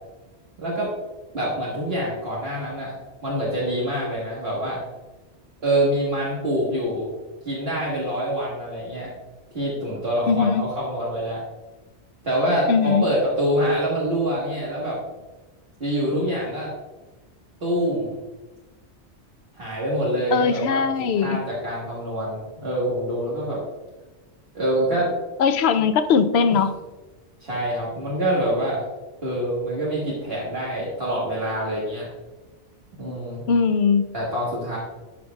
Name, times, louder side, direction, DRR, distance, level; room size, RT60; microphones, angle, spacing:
voice 1, 0.6-0.9 1.3-3.0 3.2-4.8 5.6-7.1 7.5-9.1 9.5-11.4 12.2-15.0 15.8-16.7 17.6-18.2 19.6-20.8 21.2-23.6 24.5-25.1 27.4-28.8 29.2-32.1 33.0-33.4 34.1-34.8, right 1 dB, 60° right, -6 dB, 1.7 m, -25 dB
voice 2, 10.3-10.6 12.7-13.1 20.3-21.4 25.4-26.7 33.5-34.0, left 6 dB, 70° left, 10 dB, 0.8 m, -20 dB
13.0 x 5.1 x 2.3 m, 1.2 s
omnidirectional pair, 1.2 m